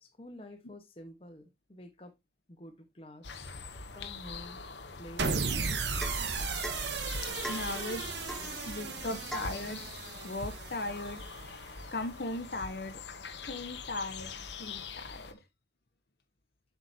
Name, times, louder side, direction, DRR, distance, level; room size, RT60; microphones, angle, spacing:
voice 1, 0.0-2.1 2.5-3.5 3.9-4.7 5.0-5.7 8.3-8.6 9.0-9.2, left 1 dB, 35° left, 1.2 m, -49 dB
sound 1, 3.2-15.3, left 4 dB, 85° left, 1.0 m, -44 dB
sound 2, 5.2-11.5, right 4 dB, 85° right, 1.0 m, -35 dB
Domestic sounds home sounds / Chink clink / Drip, 6.0-6.3 6.6-6.9 7.4-7.7 8.3-8.5 9.3-9.6, right 1 dB, ahead, 0.4 m, -40 dB
voice 2, 7.2-8.1 8.6-9.8 10.2-11.2 11.9-13.0 13.4-14.3 14.6-15.4, left 2 dB, 65° left, 0.9 m, -38 dB
7.6 x 5.9 x 2.8 m
head